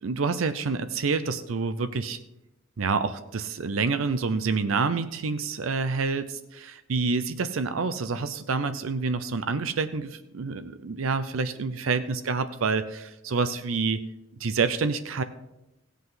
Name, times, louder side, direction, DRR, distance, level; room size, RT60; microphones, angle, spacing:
voice 1, 0.0-2.2 2.8-14.0 14.4-15.2, right 4 dB, 85° right, 11 dB, 0.6 m, -28 dB
16.5 x 8.2 x 3.9 m, 0.93 s
head